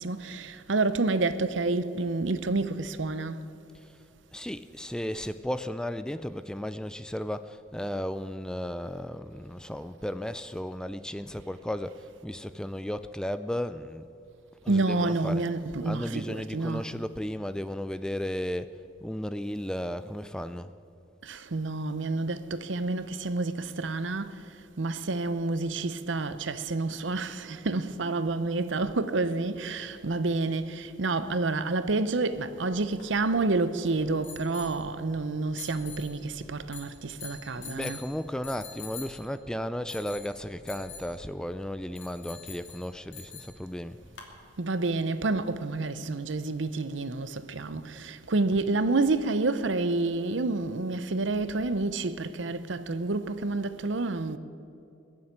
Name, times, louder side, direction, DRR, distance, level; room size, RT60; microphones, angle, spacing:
voice 1, 0.0-3.4 14.7-16.9 21.2-24.3 24.8-38.0 44.6-54.4, right 3 dB, 70° right, 0.8 m, -29 dB
voice 2, 4.3-14.1 14.6-15.4 15.8-18.7 19.0-20.7 37.5-44.0, equal, 5° left, 0.3 m, -34 dB
sound 1, 32.7-44.3, left 5 dB, 70° left, 2.7 m, -47 dB
21.5 x 7.5 x 9.0 m
head